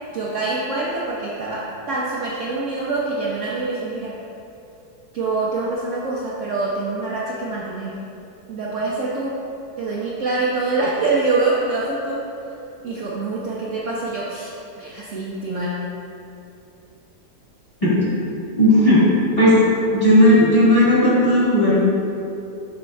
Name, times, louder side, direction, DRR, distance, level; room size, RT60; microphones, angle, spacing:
voice 1, 0.1-4.2 5.1-8.0 8.5-9.4 9.8-12.2 12.8-15.8, right 3 dB, 60° right, -5 dB, 0.8 m, -25 dB
voice 2, 17.8-18.1 18.6-19.0 19.4-19.6 19.9-21.8, left 1 dB, 20° left, -10 dB, 1.6 m, -15 dB
7.5 x 5.5 x 2.3 m, 2.7 s
omnidirectional pair, 1.8 m